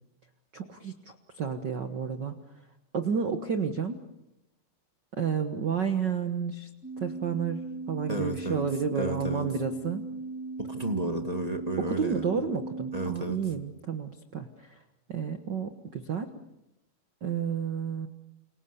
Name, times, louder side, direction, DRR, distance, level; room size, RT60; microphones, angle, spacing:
voice 1, 0.5-2.4 2.9-4.0 5.1-6.7 7.0-10.0 11.8-14.8 15.1-16.3 17.2-18.1, right 6 dB, 60° right, 7 dB, 1.1 m, -31 dB
sound 1, 6.8-13.2, right 3 dB, 30° left, 1.3 m, -38 dB
voice 2, 8.1-8.6 8.9-9.4 10.6-12.4 12.9-13.4, right 1 dB, 15° right, 5 dB, 1.5 m, -32 dB
29.5 x 28.0 x 6.9 m, 0.91 s
omnidirectional pair, 4.0 m